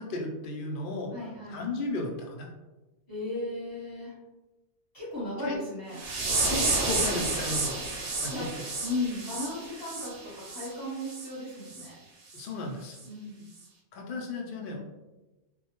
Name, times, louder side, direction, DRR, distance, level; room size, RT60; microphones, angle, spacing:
voice 1, 0.0-1.1 1.5-2.5 5.4-5.6 6.4-7.7 8.2-8.5 12.3-13.0 13.9-14.8, left 2 dB, 60° left, 0 dB, 0.6 m, -34 dB
voice 2, 1.1-1.6 3.1-4.1 4.9-6.0 8.3-8.5 8.8-12.0 13.0-13.5, left 2 dB, 20° left, -7 dB, 0.9 m, -36 dB
sound 1, 5.9-10.7 11.0-11.3 11.7-11.9 12.3-12.5 13.0-13.1, right 3 dB, 60° right, 0.7 m, -31 dB
2.2 x 2.1 x 2.8 m, 1.1 s
omnidirectional pair, 1.2 m